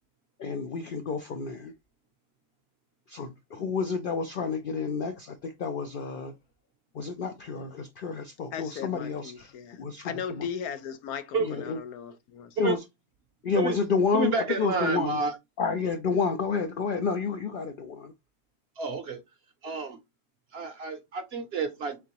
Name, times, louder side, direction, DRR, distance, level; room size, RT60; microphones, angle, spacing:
voice 1, 0.4-1.7 3.1-6.3 6.9-9.5 9.8-10.5 11.4-11.8 12.6-12.8 13.4-15.2 15.6-18.1, left 5 dB, 75° left, 0.4 m, -30 dB
voice 2, 8.5-12.6, left 7 dB, 90° left, 1.2 m, -37 dB
voice 3, 14.1-15.3 18.8-19.2 19.6-20.0 20.5-22.0, right 4 dB, 55° right, 0.7 m, -30 dB
3.7 x 3.7 x 2.9 m
omnidirectional pair, 1.5 m